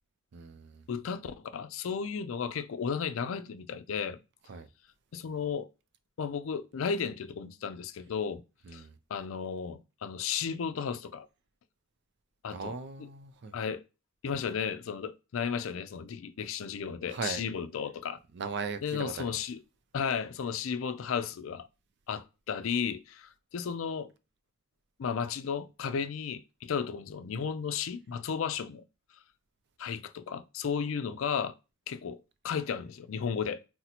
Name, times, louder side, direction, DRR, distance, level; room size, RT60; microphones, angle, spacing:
voice 1, 0.3-0.8 4.5-4.7 8.7-9.0 12.5-13.5 17.1-17.5 18.3-19.4, right 5 dB, 60° right, 0.4 m, -38 dB
voice 2, 0.9-4.2 5.1-5.7 6.2-8.4 8.7-8.8 9.1-11.3 12.4-13.1 13.5-13.8 14.2-18.2 18.8-19.6 19.9-21.7 22.1-24.1 25.0-28.8 29.8-31.5 31.9-33.6, left 6 dB, 80° left, 0.4 m, -34 dB
2.8 x 2.1 x 4.0 m
head